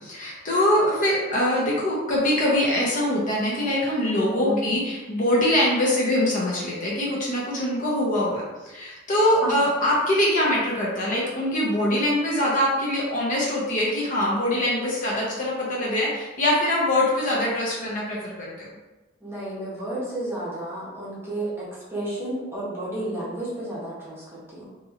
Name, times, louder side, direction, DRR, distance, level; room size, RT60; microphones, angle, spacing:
voice 1, 0.1-18.7, left 1 dB, 40° left, -5 dB, 0.7 m, -23 dB
voice 2, 4.4-4.7 9.4-9.6 19.2-24.7, right 1 dB, 10° right, -8 dB, 0.8 m, -32 dB
2.9 x 2.7 x 2.4 m, 1.1 s
head